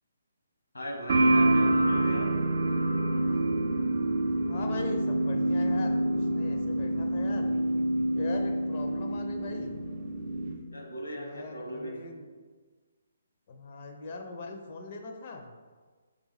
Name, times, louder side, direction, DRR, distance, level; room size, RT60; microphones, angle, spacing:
voice 1, 0.7-2.4 10.7-12.0, equal, 80° left, 0 dB, 1.0 m, -38 dB
sound 1, 1.1-10.6, right 1 dB, 45° right, 0.4 m, -27 dB
voice 2, 4.4-7.5 8.1-9.8 11.1-12.3 13.5-15.5, left 3 dB, 40° left, 4 dB, 0.5 m, -40 dB
3.9 x 3.5 x 3.0 m, 1.4 s
figure-of-eight pair, 135°, 0 cm